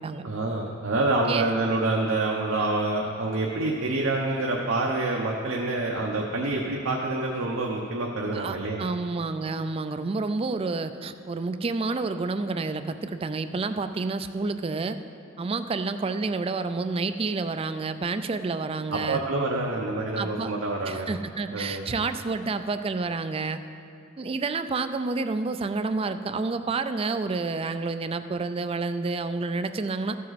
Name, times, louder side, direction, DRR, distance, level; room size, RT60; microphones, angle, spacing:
voice 1, 0.2-8.9 18.9-21.1 21.5-21.8, right 2 dB, 75° right, -2 dB, 0.9 m, -27 dB
voice 2, 8.3-15.0 15.4-19.2 20.2-20.5 20.9-23.6 24.2-30.2, right 3 dB, 30° right, 10 dB, 0.4 m, -29 dB
14.5 x 7.5 x 4.1 m, 2.5 s
head